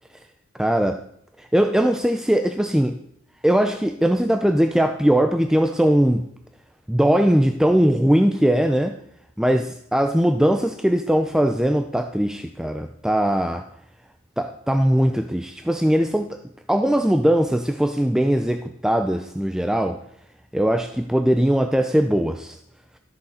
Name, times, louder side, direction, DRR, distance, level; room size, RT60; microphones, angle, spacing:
voice 1, 0.6-1.0 1.4-3.0 3.4-6.3 6.9-9.0 9.4-13.6 14.4-16.4 16.7-20.0 20.5-22.6, equal, 5° right, 0.4 m, -20 dB
13.0 x 6.5 x 4.2 m
head